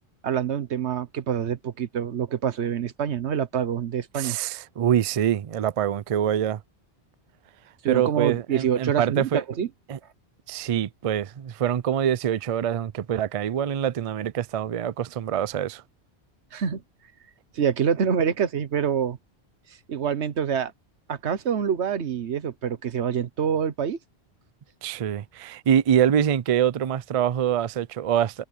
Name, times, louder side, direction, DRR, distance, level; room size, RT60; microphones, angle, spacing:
voice 1, 0.2-4.4 7.8-9.7 16.5-16.8 17.5-19.2 19.9-20.7 21.1-24.0, right 8 dB, 85° right, 1.3 m, -26 dB
voice 2, 4.1-6.6 7.9-9.4 9.9-10.0 10.5-15.8 24.8-28.4, right 9 dB, 55° right, 0.4 m, -25 dB
omnidirectional pair, 1.1 m